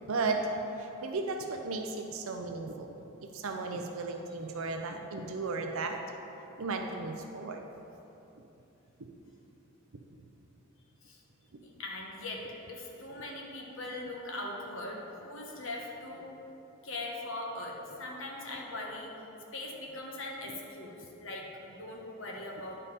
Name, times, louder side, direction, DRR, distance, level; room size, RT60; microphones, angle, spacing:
voice 1, 0.1-0.4 0.8-2.9 3.2-6.0 6.6-7.6, right 3 dB, 70° right, 4 dB, 0.5 m, -35 dB
voice 2, 11.6-12.4 12.7-16.2 16.8-19.1 19.5-22.8, left 2 dB, 65° left, -1 dB, 1.2 m, -40 dB
9.7 x 5.4 x 4.1 m, 3.0 s
head